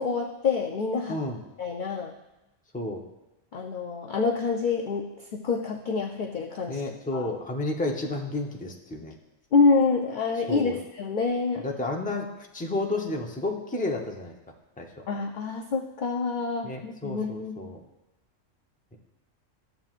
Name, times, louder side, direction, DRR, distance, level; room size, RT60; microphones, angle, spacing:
voice 1, 0.0-1.2 1.6-2.1 3.5-5.1 5.3-6.8 7.1-7.3 9.5-11.6 15.1-17.7, left 4 dB, 55° left, 2 dB, 0.5 m, -27 dB
voice 2, 1.1-1.4 2.7-3.0 6.7-9.1 10.5-10.8 11.6-14.3 14.8-15.0 16.6-17.8, left 2 dB, 10° left, 0 dB, 0.6 m, -31 dB
13.0 x 7.6 x 2.4 m, 0.99 s
omnidirectional pair, 1.3 m